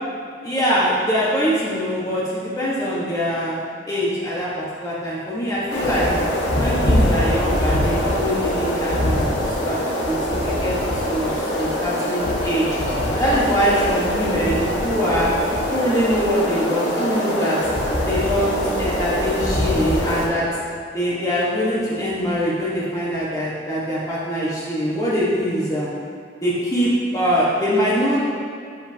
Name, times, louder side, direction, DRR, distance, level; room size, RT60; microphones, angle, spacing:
voice 1, 0.4-6.1 6.6-10.7 11.1-12.7 13.1-15.4 15.7-17.6 18.1-20.5 20.9-25.9 26.4-28.2, equal, 20° left, -8 dB, 1.4 m, -23 dB
sound 1, 5.7-20.3, left 1 dB, 85° left, 1.6 m, -23 dB
13.0 x 6.5 x 2.9 m, 2.3 s
head